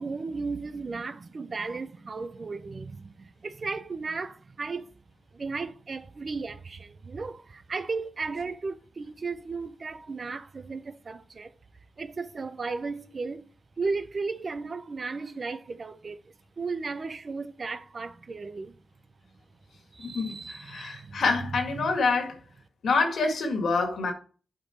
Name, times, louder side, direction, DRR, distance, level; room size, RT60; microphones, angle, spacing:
voice 1, 0.0-5.0 5.3-11.5 12.0-13.5 13.8-16.2 16.6-18.7 19.9-21.2 21.8-22.0, right 4 dB, 50° right, 0.7 m, -35 dB
voice 2, 20.0-22.4 22.8-24.1, left 4 dB, 75° left, 2.0 m, -27 dB
8.3 x 4.5 x 4.3 m
cardioid pair, 55°, 0 cm